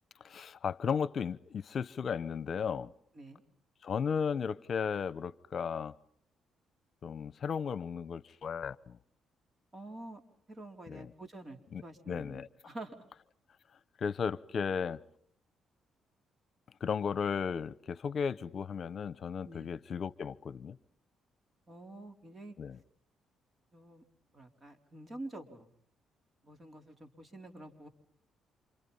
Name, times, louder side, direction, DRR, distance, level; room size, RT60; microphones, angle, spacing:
voice 1, 0.2-2.9 3.8-5.9 7.0-9.0 10.9-11.1 11.7-12.5 14.0-15.0 16.8-20.8 22.6-22.8, left 6 dB, 50° left, 1.0 m, -35 dB
voice 2, 9.7-10.2 10.5-13.0 19.4-19.7 21.7-22.5 23.7-24.0 24.3-25.7 26.4-27.9, right 2 dB, 35° right, 4.3 m, -47 dB
29.0 x 27.5 x 5.6 m
cardioid pair, 90°, 0 cm